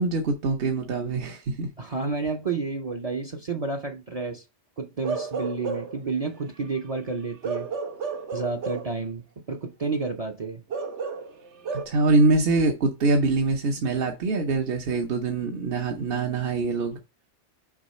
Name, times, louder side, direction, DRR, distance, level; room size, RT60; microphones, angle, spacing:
voice 1, 0.0-1.7 11.7-17.0, right 3 dB, 60° right, 1.0 m, -24 dB
voice 2, 1.8-4.4 4.8-7.7 8.3-10.6, right 4 dB, 40° right, 0.7 m, -30 dB
Bark / Livestock farm animals working animals, 5.0-6.0 7.4-9.0 10.7-11.8, right 5 dB, 80° right, 1.3 m, -32 dB
6.2 x 3.9 x 4.1 m
omnidirectional pair, 1.2 m